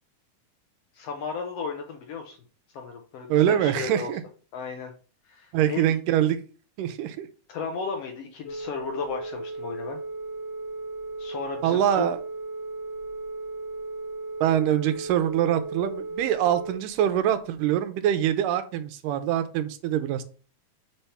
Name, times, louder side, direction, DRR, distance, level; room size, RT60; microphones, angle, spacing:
voice 1, 0.9-2.4 2.7-4.1 4.5-4.9 5.2-5.8 7.5-10.0 11.2-12.0, left 5 dB, 90° left, 4 dB, 1.3 m, -34 dB
voice 2, 3.3-4.2 5.5-6.4 6.8-7.3 11.6-12.2 14.4-20.2, right 11 dB, 80° right, 11 dB, 2.2 m, -24 dB
Telephone, 8.5-16.8, right 2 dB, 70° left, 3.1 m, -36 dB
7.3 x 3.4 x 5.6 m, 0.39 s
omnidirectional pair, 3.9 m